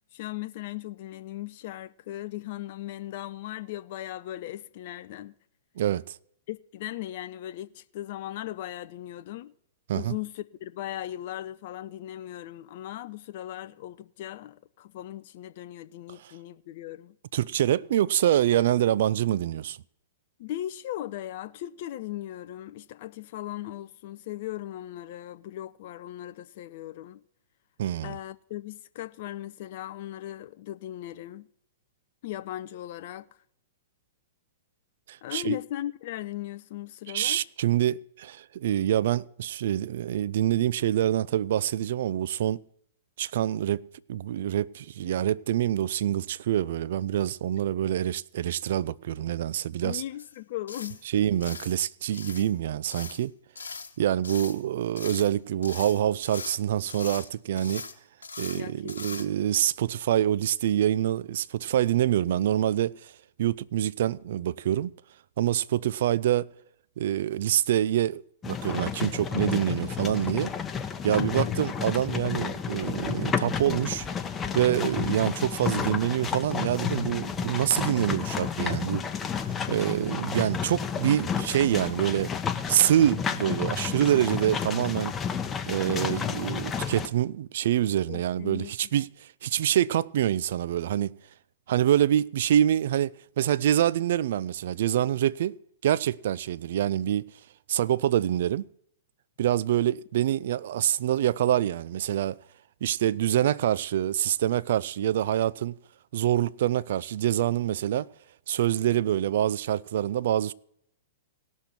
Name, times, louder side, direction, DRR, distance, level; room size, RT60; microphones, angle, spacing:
voice 1, 0.1-5.3 6.5-9.5 9.9-17.2 20.4-27.2 28.0-31.5 32.2-33.3 35.2-37.4 49.8-51.2 58.5-59.3 71.2-71.5 88.1-89.0, left 13 dB, 50° left, 0.4 m, -38 dB
voice 2, 17.3-19.8 27.8-28.2 35.1-35.6 37.1-42.6 43.2-43.8 44.1-50.0 51.1-53.3 54.0-57.8 58.4-63.1 63.4-64.9 65.4-66.5 67.0-70.5 71.0-74.1 74.5-79.0 79.7-82.3 82.7-85.1 85.7-91.1 91.7-95.6 95.8-97.3 97.7-98.7 99.4-102.3 102.8-105.7 106.1-108.1 108.5-110.5, right 11 dB, 55° right, 0.3 m, -26 dB
sound 1, 50.2-50.4 50.7-51.0 51.4-51.8 52.1-52.5 52.9-53.2 53.6-53.9 54.2-54.6 55.0-55.4 55.6-56.6 56.9-57.3 57.6-57.9 58.2-58.6 58.9-59.2, left 4 dB, 75° left, 1.1 m, -40 dB
sound 2, 68.4-87.1, left 7 dB, 15° left, 0.8 m, -31 dB
18.0 x 6.3 x 4.4 m
figure-of-eight pair, 105°, 0 cm